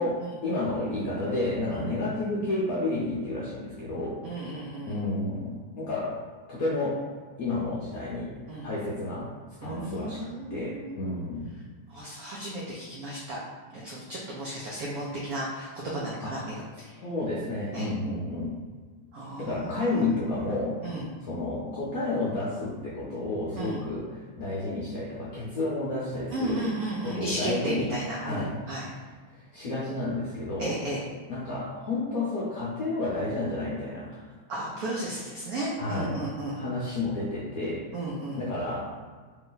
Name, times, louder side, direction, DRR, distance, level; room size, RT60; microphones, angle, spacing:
voice 1, 0.0-4.2 4.9-6.2 6.5-7.0 7.4-8.3 8.6-9.3 9.6-11.5 16.2-16.5 17.0-18.6 19.4-20.8 21.2-26.7 27.0-28.5 28.8-29.0 29.3-30.8 31.3-34.3 35.8-36.3 36.6-37.8 38.4-39.0, left 2 dB, 70° left, -6 dB, 0.8 m, -31 dB
voice 2, 4.2-5.0 8.5-8.7 9.6-11.2 11.9-13.4 13.7-17.0 17.7-17.9 19.1-20.0 20.8-21.1 23.6-23.8 26.3-28.8 30.6-31.0 34.5-36.6 37.9-38.4, right 1 dB, 85° right, -4 dB, 0.8 m, -34 dB
3.3 x 3.0 x 3.8 m, 1.5 s
omnidirectional pair, 2.4 m